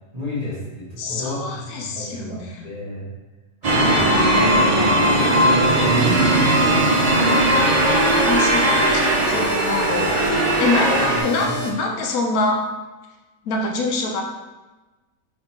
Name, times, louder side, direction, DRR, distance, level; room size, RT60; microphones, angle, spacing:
voice 1, 0.1-3.1 3.6-7.4 11.0-11.6, equal, 25° right, -10 dB, 1.6 m, -31 dB
voice 2, 1.0-2.6 4.1-5.3 7.1-10.3 10.6-12.6 13.5-14.2, left 3 dB, 80° left, 2 dB, 1.0 m, -25 dB
sound 1, 3.6-11.2, right 1 dB, 85° right, 0.3 m, -18 dB
sound 2, 4.7-11.7, right 2 dB, 45° left, 0.6 m, -31 dB
Strum, 6.0-10.1, right 1 dB, 40° right, 1.5 m, -33 dB
3.6 x 3.2 x 4.3 m, 1.2 s
omnidirectional pair, 1.6 m